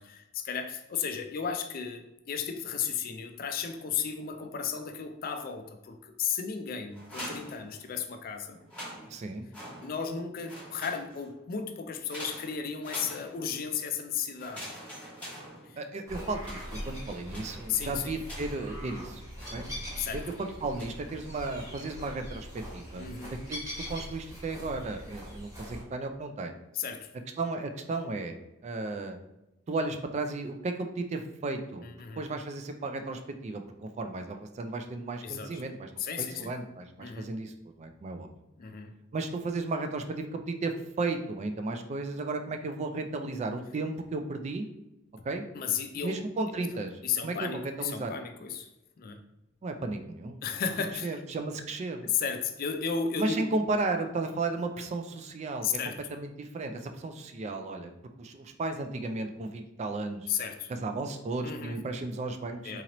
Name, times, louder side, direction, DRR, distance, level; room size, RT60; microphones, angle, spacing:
voice 1, 0.0-8.6 9.8-14.7 15.6-15.8 17.7-18.1 20.0-20.2 23.0-23.3 26.7-27.1 31.8-32.2 35.2-35.6 36.0-36.5 37.0-37.3 38.6-38.9 45.5-46.2 47.0-48.7 49.0-49.2 50.4-51.2 52.0-53.5 55.6-56.0 60.3-60.7 61.4-61.8 62.6-62.8, left 7 dB, 45° left, 7 dB, 0.4 m, -34 dB
sound 1, 6.9-8.2 8.6-10.2 10.4-11.4 12.1-13.7 14.4-16.0 16.4-18.8 19.4-20.1 20.8-21.1 21.5-22.0, equal, 5° left, 1.4 m, -45 dB
voice 2, 9.1-9.5 15.8-19.2 19.5-19.7 20.1-23.6 23.9-26.6 27.4-28.4 28.6-29.2 29.7-31.9 32.2-35.9 36.2-38.3 39.1-44.7 45.2-45.4 46.0-48.2 49.6-50.4 51.0-52.1 53.2-55.7 56.1-57.9 58.2-60.3 60.7-62.8, right 3 dB, 35° right, 6 dB, 0.3 m, -34 dB
Vinyard Walk, 16.1-25.8, equal, 15° right, 1.2 m, -42 dB
3.8 x 2.9 x 2.9 m, 0.93 s
head